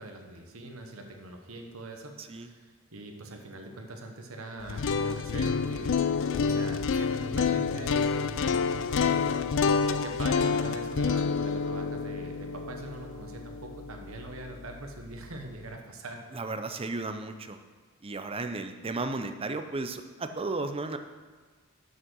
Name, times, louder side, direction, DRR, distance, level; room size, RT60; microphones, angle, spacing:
voice 1, 0.0-5.9 6.4-9.7 10.0-16.2, right 2 dB, 70° right, 3 dB, 1.1 m, -43 dB
voice 2, 2.2-2.5 16.3-17.6 18.0-21.0, right 3 dB, 25° right, 8 dB, 0.5 m, -34 dB
sound 1, 4.6-14.6, left 5 dB, 60° left, 0.4 m, -28 dB
7.4 x 6.3 x 6.2 m, 1.4 s
head